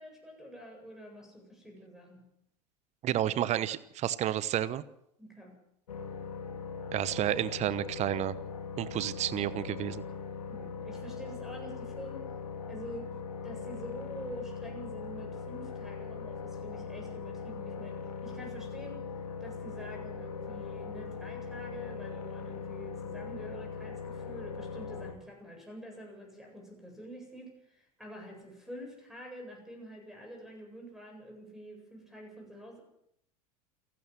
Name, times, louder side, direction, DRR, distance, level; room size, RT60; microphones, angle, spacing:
voice 1, 0.0-2.2 5.2-5.5 10.5-12.3 12.7-13.1 13.4-19.1 19.4-32.8, equal, ahead, 2 dB, 8.0 m, -47 dB
voice 2, 3.0-4.8 6.9-8.3 8.8-10.0, right 12 dB, 35° right, 17 dB, 1.0 m, -31 dB
sound 1, 5.9-25.1, left 5 dB, 75° left, 2.7 m, -40 dB
28.5 x 12.5 x 7.6 m, 0.77 s
figure-of-eight pair, 80°, 20 cm